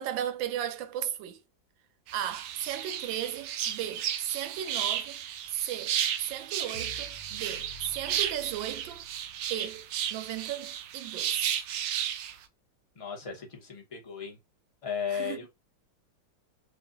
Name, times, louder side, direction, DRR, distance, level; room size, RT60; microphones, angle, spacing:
voice 1, 0.0-1.4 2.1-5.2 5.5-9.0 9.5-11.6 15.1-15.4, right 11 dB, 90° right, 1.3 m, -35 dB
sound 1, 2.1-12.3, right 10 dB, 75° right, 1.2 m, -34 dB
sound 2, 6.7-9.8, right 1 dB, 70° left, 1.4 m, -50 dB
voice 2, 12.9-14.4 14.8-15.5, left 7 dB, 25° left, 0.8 m, -35 dB
4.8 x 2.3 x 2.6 m
omnidirectional pair, 2.0 m